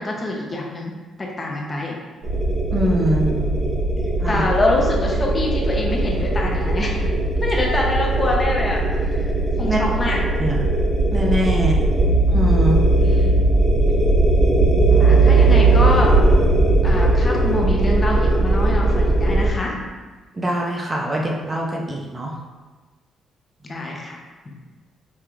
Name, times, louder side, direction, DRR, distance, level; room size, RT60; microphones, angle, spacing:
voice 1, 0.0-2.0 3.3-3.8 4.3-7.0 7.4-9.3 9.6-10.2 13.0-13.3 15.0-16.1 16.8-19.8 23.6-24.2 24.5-24.6, left 2 dB, 30° left, -1 dB, 0.7 m, -25 dB
sound 1, 2.2-19.5, right 2 dB, 50° right, 1.3 m, -18 dB
voice 2, 2.7-3.3 4.2-4.4 9.6-10.6 11.1-11.8 12.3-12.9 20.3-22.4, equal, 25° right, -1 dB, 0.6 m, -23 dB
4.9 x 2.8 x 2.4 m, 1.3 s
cardioid pair, 90°, 0 cm